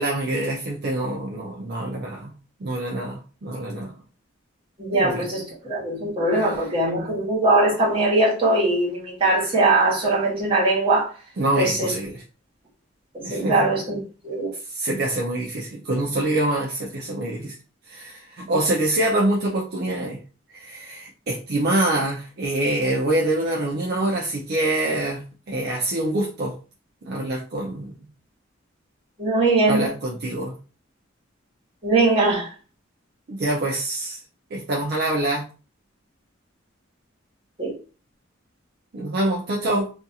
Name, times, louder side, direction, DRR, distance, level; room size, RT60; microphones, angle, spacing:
voice 1, 0.0-2.3 2.6-3.9 4.9-5.3 6.3-6.7 11.4-12.2 13.2-13.7 14.5-17.6 17.9-20.2 20.5-26.5 27.0-28.0 29.7-30.5 33.3-34.2 34.5-35.5 38.9-39.9, right 1 dB, 55° right, 0.5 m, -25 dB
voice 2, 4.8-11.1 11.6-11.9 13.1-14.0 14.2-14.5 29.2-29.8 31.8-32.5 37.6-37.7, right 2 dB, 30° right, 1.3 m, -21 dB
2.5 x 2.3 x 2.7 m
head